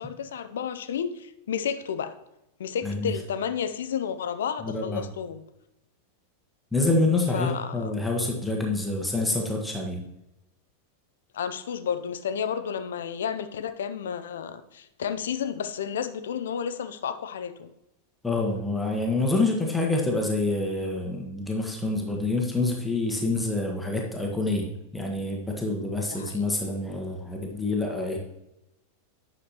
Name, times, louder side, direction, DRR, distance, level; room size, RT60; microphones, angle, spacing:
voice 1, 0.0-2.1 2.6-5.4 7.3-7.9 11.3-17.7 26.1-26.5, left 7 dB, 60° left, 11 dB, 0.6 m, -31 dB
voice 2, 4.6-5.0 6.7-10.0 18.2-28.2, left 2 dB, 5° left, 0 dB, 1.3 m, -27 dB
10.0 x 6.6 x 3.0 m, 0.89 s
figure-of-eight pair, 90°, 0 cm